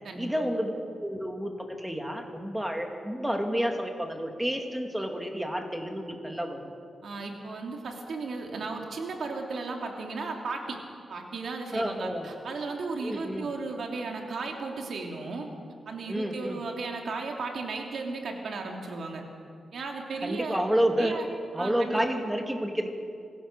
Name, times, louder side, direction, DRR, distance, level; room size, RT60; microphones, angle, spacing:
voice 1, 0.1-0.7 1.0-6.6 11.7-12.3 13.0-13.5 16.1-16.6 20.2-21.2 21.5-22.9, equal, 5° right, 3 dB, 2.5 m, -30 dB
voice 2, 7.0-10.8 11.1-15.5 15.9-19.2 19.7-20.6 21.0-21.3 21.6-22.0, right 3 dB, 70° right, 2 dB, 3.0 m, -35 dB
24.0 x 16.5 x 6.9 m, 2.3 s
wide cardioid pair, 115°, 0 cm